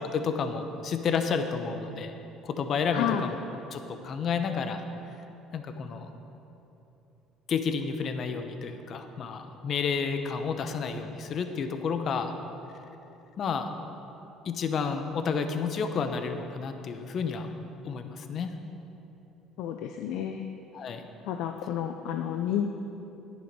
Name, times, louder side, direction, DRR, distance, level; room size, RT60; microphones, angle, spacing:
voice 1, 0.0-2.1 2.4-3.4 3.7-4.8 5.5-6.1 7.5-12.3 13.4-13.7 14.4-17.5 17.8-18.5 20.7-21.0, left 5 dB, 45° left, 7 dB, 0.8 m, -30 dB
voice 2, 2.9-3.3 19.6-20.4 21.2-22.7, left 9 dB, 75° left, 6 dB, 0.5 m, -30 dB
10.5 x 10.5 x 4.7 m, 3.0 s
cardioid pair, 120°, 0 cm